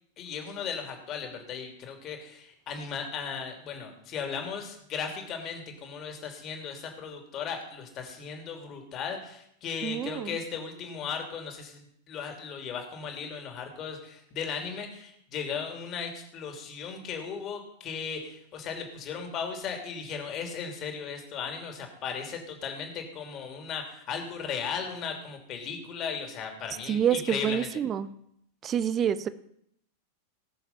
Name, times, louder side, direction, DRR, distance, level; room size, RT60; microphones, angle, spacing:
voice 1, 0.2-27.7, left 6 dB, 35° left, 4 dB, 2.9 m, -36 dB
voice 2, 9.8-10.4 26.9-28.1 28.6-29.3, right 9 dB, 25° right, 15 dB, 0.8 m, -27 dB
19.0 x 6.7 x 5.7 m, 0.72 s
figure-of-eight pair, 90°, 0 cm